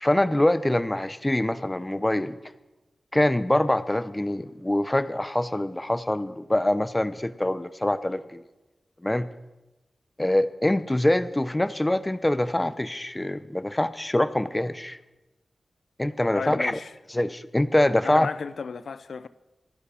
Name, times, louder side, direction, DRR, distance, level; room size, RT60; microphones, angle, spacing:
voice 1, 0.0-2.4 3.1-8.4 9.0-9.3 10.2-15.0 16.0-16.8 17.1-18.3, left 1 dB, 15° left, 0.8 m, -24 dB
voice 2, 16.3-16.9 18.0-19.3, left 5 dB, 80° left, 0.5 m, -34 dB
25.0 x 11.5 x 4.3 m
wide cardioid pair, 70°, 0 cm